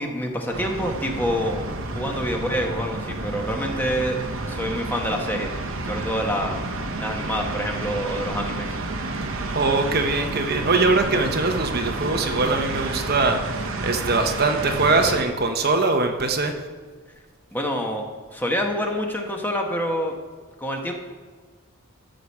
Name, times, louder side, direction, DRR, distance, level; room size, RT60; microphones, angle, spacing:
voice 1, 0.0-1.6 1.9-4.2 4.5-5.5 5.8-6.6 7.0-8.8 17.5-20.2 20.6-20.9, equal, 10° left, 1 dB, 1.2 m, -27 dB
sound 1, 0.5-15.2, right 2 dB, 70° right, 1.2 m, -30 dB
voice 2, 9.5-16.5, right 3 dB, 45° right, 5 dB, 0.9 m, -22 dB
13.0 x 5.1 x 7.2 m, 1.5 s
head